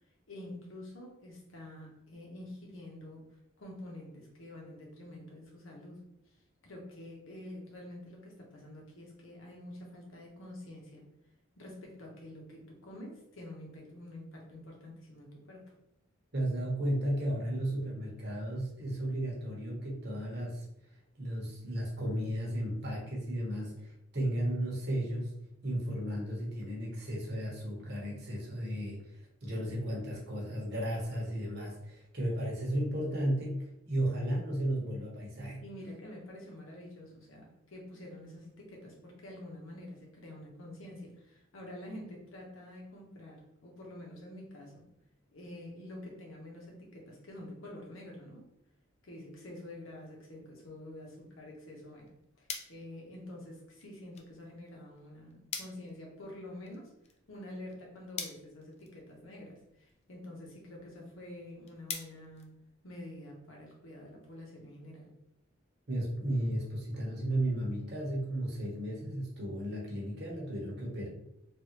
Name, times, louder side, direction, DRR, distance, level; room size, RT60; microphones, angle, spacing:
voice 1, 0.3-3.2 3.6-6.0 6.6-11.1 11.6-15.7 35.6-44.9 45.3-48.5 49.0-52.1 52.4-56.9 57.3-62.5 62.8-65.1, left 1 dB, 85° left, -1 dB, 1.0 m, -47 dB
voice 2, 16.3-20.6 21.2-25.3 25.6-29.0 29.4-35.6 65.9-71.1, right 1 dB, 55° right, -3 dB, 1.0 m, -34 dB
sound 1, 51.8-63.2, left 6 dB, 30° left, 0.3 m, -48 dB
3.3 x 2.5 x 3.0 m, 0.81 s
head